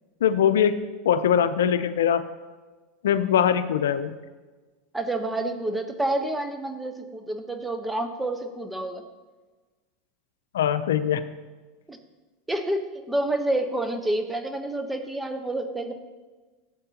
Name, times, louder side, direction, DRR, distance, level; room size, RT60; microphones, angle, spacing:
voice 1, 0.2-2.2 3.0-4.1 10.5-11.2, left 9 dB, 90° left, 11 dB, 0.6 m, -22 dB
voice 2, 4.9-9.0 11.9-12.0 12.5-12.8 13.1-15.9, right 1 dB, 10° right, 7 dB, 1.0 m, -28 dB
15.5 x 7.8 x 2.9 m, 1.3 s
supercardioid pair, 115°, 0 cm